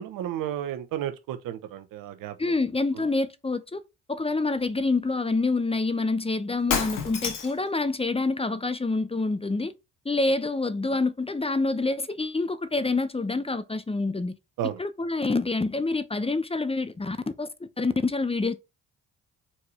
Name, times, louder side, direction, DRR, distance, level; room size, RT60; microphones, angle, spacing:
voice 1, 0.0-2.5 2.9-3.0 14.6-14.8, right 11 dB, 70° right, 1.0 m, -33 dB
voice 2, 2.4-3.8 4.1-9.7 10.0-14.4 14.8-18.5, left 3 dB, 15° left, 0.8 m, -27 dB
Shatter, 6.6-7.7, left 6 dB, 65° left, 1.6 m, -28 dB
4.8 x 4.3 x 4.8 m
hypercardioid pair, 45°, 35 cm